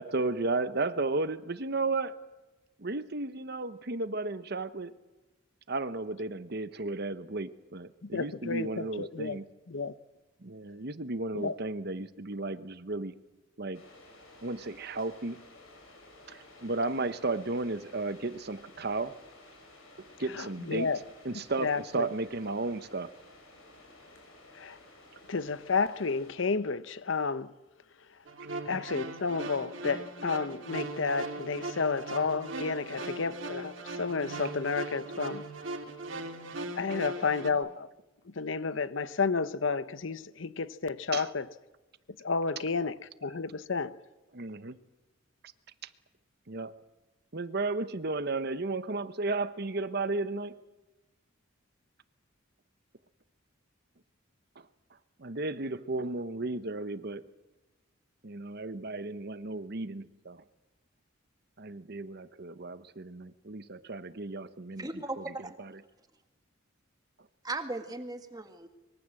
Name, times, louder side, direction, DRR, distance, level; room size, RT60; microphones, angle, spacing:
voice 1, 0.0-2.2 2.8-4.9 5.7-9.5 10.4-13.1 13.6-13.8 14.4-15.4 16.3-19.2 20.2-20.9 21.2-23.1 41.1-41.3 44.3-44.8 46.5-46.8 47.3-50.6 55.2-57.2 58.2-60.4 61.6-64.9 65.2-65.3 65.6-65.7, right 3 dB, 50° right, 1.0 m, -34 dB
voice 2, 8.0-9.4 9.7-9.9 11.3-11.5 20.3-21.0 21.6-22.1 24.5-24.8 25.3-27.5 28.6-35.5 36.8-37.9 38.3-41.5 42.2-44.0, left 4 dB, 65° left, 0.8 m, -31 dB
sound 1, 13.7-26.3, left 2 dB, 85° left, 7.0 m, -54 dB
sound 2, 28.3-37.5, right 2 dB, 70° right, 2.6 m, -39 dB
voice 3, 64.7-65.6 67.4-68.7, right 2 dB, 20° right, 1.8 m, -37 dB
25.0 x 22.5 x 7.8 m
head